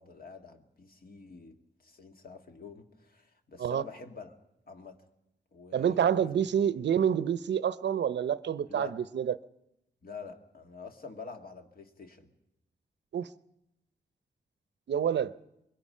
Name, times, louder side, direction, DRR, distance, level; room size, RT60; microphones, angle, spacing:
voice 1, 0.0-4.3 4.7-5.0 5.5-7.0 8.7-9.0 10.0-12.3, left 4 dB, 55° left, 1.9 m, -47 dB
voice 2, 5.7-9.4 13.1-13.3 14.9-15.3, right 8 dB, 70° right, 0.7 m, -28 dB
24.5 x 22.0 x 5.5 m
wide cardioid pair, 105°, 19 cm